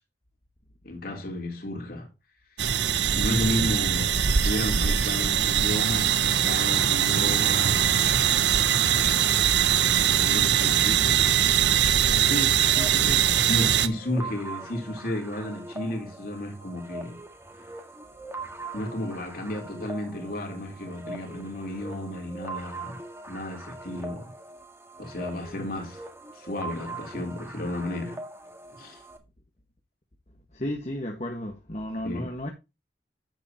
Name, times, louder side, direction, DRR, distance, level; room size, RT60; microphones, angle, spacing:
voice 1, 0.8-2.1 3.1-8.0 10.0-11.5 13.0-17.2 18.7-23.0 23.3-24.3 25.0-26.0 26.3-28.2 28.7-29.0 32.0-32.3, left 1 dB, 55° left, 3.9 m, -33 dB
sound 1, 2.6-13.9, right 9 dB, 85° right, 0.9 m, -22 dB
voice 2, 12.2-13.2 30.5-32.5, left 1 dB, 40° left, 1.7 m, -33 dB
sound 2, 12.6-29.2, right 2 dB, 15° right, 1.7 m, -41 dB
11.0 x 8.3 x 3.0 m
head